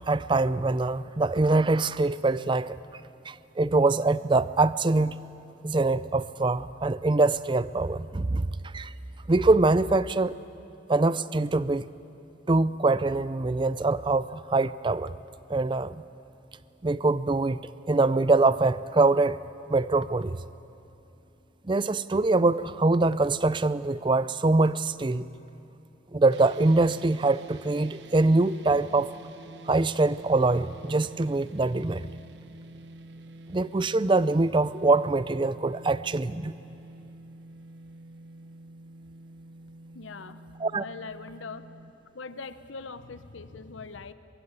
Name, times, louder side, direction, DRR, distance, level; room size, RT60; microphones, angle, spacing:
voice 1, 0.1-2.8 3.3-5.2 5.6-8.9 9.3-10.3 10.9-11.8 12.5-15.1 15.5-16.0 16.8-19.4 19.7-20.4 21.6-25.3 26.1-29.1 29.7-32.1 33.5-36.5 40.6-40.9, right 3 dB, 25° right, 16 dB, 0.4 m, -24 dB
sound 1, 26.3-41.9, right 2 dB, 60° right, 1.0 m, -48 dB
voice 2, 39.9-40.4 40.7-41.7 42.1-44.1, left 4 dB, 80° left, 12 dB, 0.9 m, -41 dB
23.0 x 22.5 x 8.3 m, 2.8 s
head